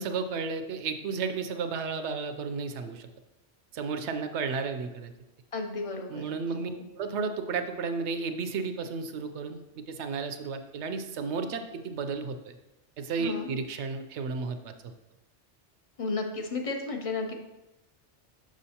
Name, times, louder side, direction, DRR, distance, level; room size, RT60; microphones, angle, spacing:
voice 1, 0.0-3.1 3.7-5.1 6.1-12.5 13.0-14.9, right 4 dB, 75° right, 8 dB, 0.9 m, -33 dB
voice 2, 5.5-6.9 13.2-13.5 16.0-17.3, left 3 dB, 40° left, 3 dB, 0.6 m, -33 dB
6.2 x 6.1 x 2.8 m, 0.99 s
omnidirectional pair, 1.2 m